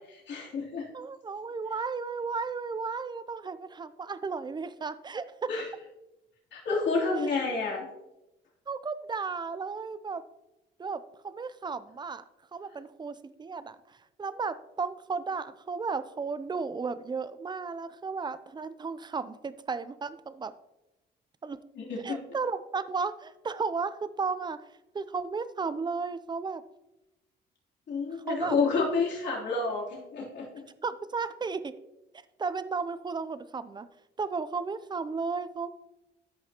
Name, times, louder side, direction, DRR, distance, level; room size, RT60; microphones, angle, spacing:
voice 1, 0.1-0.9 5.5-5.7 6.5-7.9 21.7-22.2 27.9-30.6, left 4 dB, 65° left, -4 dB, 3.2 m, -29 dB
voice 2, 0.9-5.5 8.7-10.2 10.8-12.2 12.5-20.5 21.4-21.6 22.0-24.6 24.9-26.6 28.3-28.6 30.8-31.7 32.4-33.9 34.2-35.7, right 4 dB, 20° right, 14 dB, 0.5 m, -34 dB
13.5 x 5.7 x 2.9 m, 0.95 s
cardioid pair, 90°, 20 cm